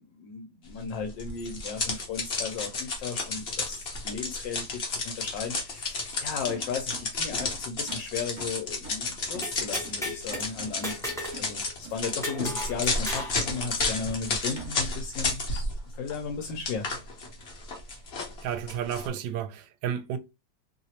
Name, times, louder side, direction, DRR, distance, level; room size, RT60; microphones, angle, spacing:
voice 1, 0.0-16.9, left 5 dB, 80° left, 1.3 m, -36 dB
sound 1, 1.2-15.8 16.1-19.1, left 3 dB, 45° left, 0.9 m, -32 dB
sound 2, 6.5-15.1, right 3 dB, 45° right, 1.1 m, -47 dB
sound 3, 9.4-10.5 10.8-11.4 11.7-11.8 12.2-13.4, equal, ahead, 0.8 m, -34 dB
voice 2, 18.4-20.2, right 9 dB, 80° right, 1.3 m, -32 dB
3.1 x 2.8 x 2.8 m
omnidirectional pair, 2.0 m